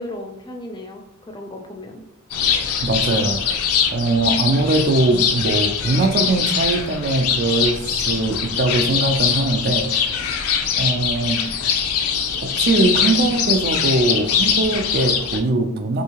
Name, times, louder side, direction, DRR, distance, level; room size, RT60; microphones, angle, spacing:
voice 1, 0.0-2.0, left 1 dB, 20° left, 2 dB, 0.4 m, -35 dB
sound 1, 2.3-15.4, left 7 dB, 75° left, 0.4 m, -22 dB
voice 2, 2.8-3.6 3.9-10.2 10.8-11.5 12.4-16.0, right 2 dB, 45° right, 7 dB, 0.4 m, -21 dB
3.5 x 2.7 x 2.9 m, 0.85 s
head